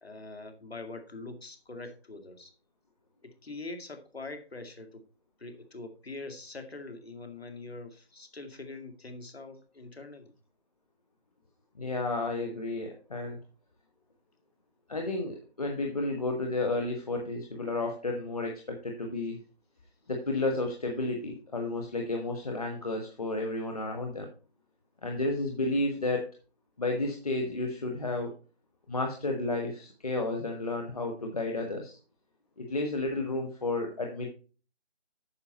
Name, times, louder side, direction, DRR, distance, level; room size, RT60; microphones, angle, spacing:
voice 1, 0.0-2.5 3.2-5.0 5.4-10.3, left 3 dB, 70° left, 6 dB, 2.2 m, -43 dB
voice 2, 11.8-13.4 14.9-19.4 20.1-24.3 25.0-26.3 26.8-28.3 28.9-32.0 32.6-34.3, left 2 dB, 35° left, 3 dB, 1.2 m, -32 dB
9.6 x 6.7 x 4.1 m, 0.36 s
figure-of-eight pair, 160°, 32 cm